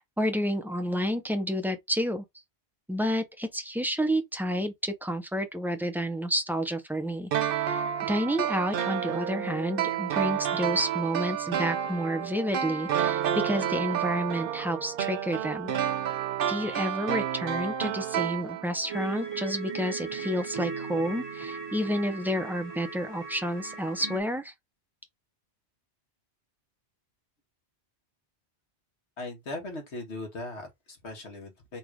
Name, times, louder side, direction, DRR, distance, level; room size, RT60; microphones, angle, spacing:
voice 1, 0.0-2.2 2.9-15.7 16.5-24.5, equal, ahead, 0.6 m, -30 dB
sound 1, 7.3-19.0 19.2-19.3, right 9 dB, 60° right, 0.8 m, -30 dB
sound 2, 18.9-24.2, right 5 dB, 25° right, 1.0 m, -37 dB
voice 2, 29.2-31.8, left 2 dB, 80° left, 1.7 m, -39 dB
3.8 x 2.5 x 4.5 m
omnidirectional pair, 1.1 m